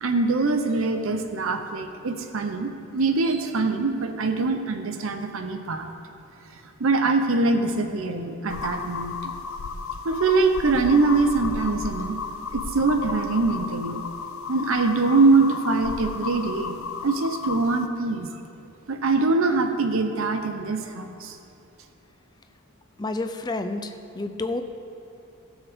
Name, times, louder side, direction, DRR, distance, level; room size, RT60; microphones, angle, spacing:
voice 1, 0.0-5.9 6.8-9.3 10.0-12.2 12.5-14.0 14.5-16.8 17.0-18.3 18.9-21.4, right 3 dB, 70° right, 6 dB, 0.7 m, -23 dB
sound 1, 8.5-17.9, left 5 dB, 75° left, 0.6 m, -33 dB
voice 2, 23.0-24.6, left 2 dB, 20° left, 7 dB, 0.4 m, -30 dB
16.0 x 7.2 x 3.6 m, 2.8 s
head